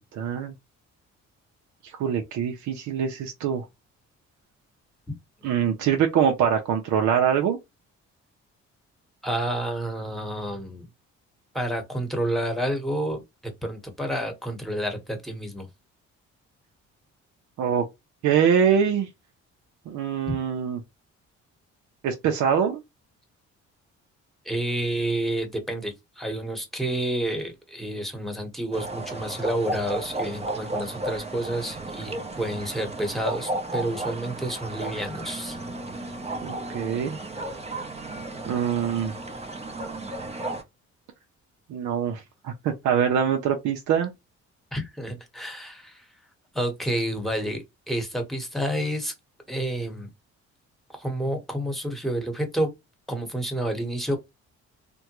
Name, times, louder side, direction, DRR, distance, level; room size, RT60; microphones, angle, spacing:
voice 1, 0.1-0.5 1.8-3.7 5.4-7.6 17.6-17.8 18.2-19.1 19.9-20.8 22.0-22.8 36.4-37.2 38.5-39.2 41.7-44.1, right 8 dB, 75° right, 0.6 m, -24 dB
voice 2, 9.2-10.9 11.5-13.2 13.6-15.7 20.3-20.4 24.4-35.6 44.7-46.1 46.5-49.1 49.5-50.1 50.9-52.7 53.1-54.2, right 1 dB, ahead, 1.1 m, -29 dB
sound 1, 28.7-40.6, right 2 dB, 20° right, 0.7 m, -33 dB
3.4 x 2.2 x 3.0 m
cardioid pair, 90°, 30 cm